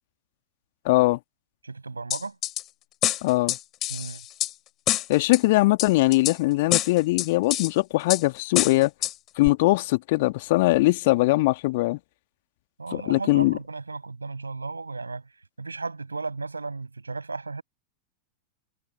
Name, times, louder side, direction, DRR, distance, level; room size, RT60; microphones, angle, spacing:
voice 1, 0.8-1.2 3.2-3.6 5.1-8.9 9.4-12.0 12.9-13.6, left 20 dB, 50° left, 2.2 m, -21 dB
voice 2, 1.6-2.4 3.9-4.2 12.8-15.3 15.6-17.6, right 3 dB, 80° right, 6.5 m, -35 dB
sound 1, 2.1-2.6 3.0-4.5 4.9-5.4 5.8-6.4 6.7-7.7 8.1-8.2 8.6-9.1 9.5-9.6, left 14 dB, 35° left, 2.9 m, -26 dB
figure-of-eight pair, 90°, 0 cm